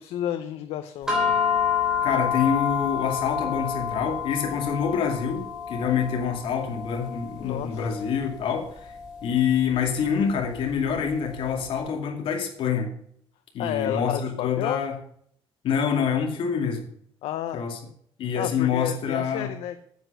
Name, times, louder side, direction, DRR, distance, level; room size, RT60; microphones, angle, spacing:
voice 1, 0.0-1.3 7.4-8.0 13.6-14.8 17.2-17.6 18.3-19.9, left 11 dB, 90° left, 8 dB, 0.8 m, -31 dB
sound 1, 1.1-11.6, left 7 dB, 5° right, 3.5 m, -29 dB
voice 2, 2.0-9.0 9.2-12.9 13.5-14.9 15.6-16.8 17.5-17.8 18.2-19.5, left 7 dB, 60° left, 3 dB, 2.3 m, -26 dB
9.4 x 8.2 x 6.5 m, 0.65 s
cardioid pair, 175°, 10 cm